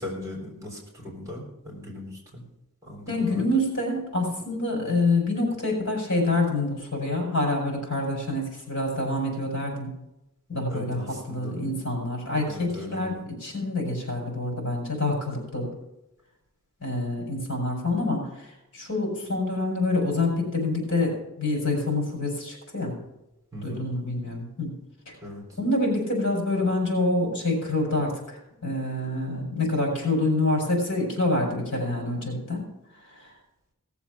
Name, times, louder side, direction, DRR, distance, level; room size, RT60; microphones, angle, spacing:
voice 1, 0.0-2.4 2.8-3.4 10.7-11.6 12.5-13.2 23.5-23.9 25.2-25.4, left 1 dB, 15° right, -1 dB, 3.7 m, -38 dB
voice 2, 3.1-9.9 10.5-13.1 13.4-15.7 16.8-23.0 23.6-24.7 25.0-25.1 25.6-32.7 33.0-33.3, left 2 dB, 55° left, 1 dB, 5.1 m, -27 dB
17.5 x 7.1 x 5.9 m, 0.90 s
head